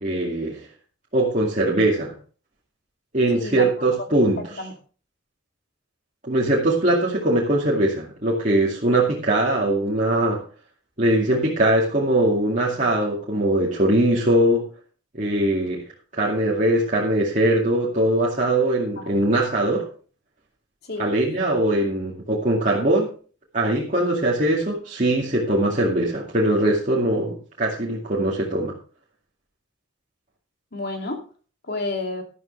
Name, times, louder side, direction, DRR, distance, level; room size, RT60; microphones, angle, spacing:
voice 1, 0.0-0.6 1.1-2.1 3.1-4.4 6.3-10.4 11.0-14.6 15.1-15.9 16.1-19.9 21.0-23.1 23.5-28.7, right 1 dB, 40° right, -5 dB, 2.3 m, -21 dB
voice 2, 3.3-3.9 4.6-4.7 19.0-19.1 20.8-21.1 30.7-31.2 31.7-32.2, left 2 dB, 55° left, 3 dB, 2.6 m, -30 dB
13.0 x 12.5 x 3.3 m, 0.39 s
head